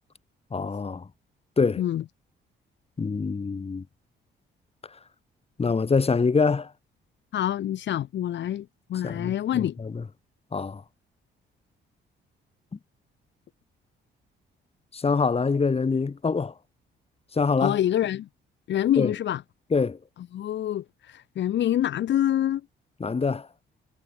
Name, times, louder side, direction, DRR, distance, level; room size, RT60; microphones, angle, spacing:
voice 1, 0.5-1.1 1.6-1.8 3.0-3.8 5.6-6.7 9.0-10.0 10.5-10.8 14.9-16.5 17.3-17.8 19.0-19.1 19.7-20.0 23.0-23.5, left 4 dB, 30° left, 2.9 m, -25 dB
voice 2, 7.3-9.8 17.6-18.3 18.7-19.4 20.3-22.6, left 11 dB, 65° left, 1.2 m, -26 dB
cardioid pair, 90°, 20 cm